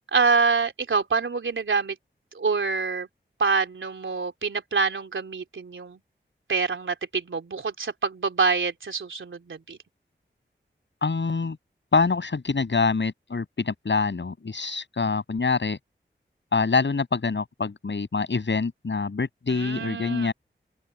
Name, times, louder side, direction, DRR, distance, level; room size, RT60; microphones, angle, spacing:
voice 1, 0.1-2.0 2.3-3.1 3.4-6.0 6.5-9.8 19.5-20.3, right 4 dB, 85° right, 3.4 m, -26 dB
voice 2, 11.0-11.6 11.9-15.8 16.5-20.3, left 4 dB, 70° left, 7.4 m, -25 dB
wide cardioid pair, 80°, 20 cm